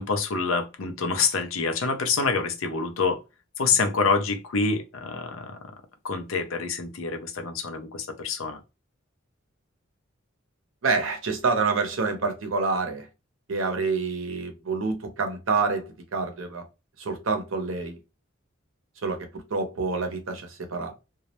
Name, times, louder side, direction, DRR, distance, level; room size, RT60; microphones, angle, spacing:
voice 1, 0.0-3.2 3.6-5.6 6.0-8.6, left 4 dB, 85° left, 0.5 m, -26 dB
voice 2, 10.8-13.1 13.5-16.6 17.0-18.0 19.0-20.9, right 4 dB, 75° right, 0.7 m, -27 dB
2.3 x 2.0 x 2.8 m
head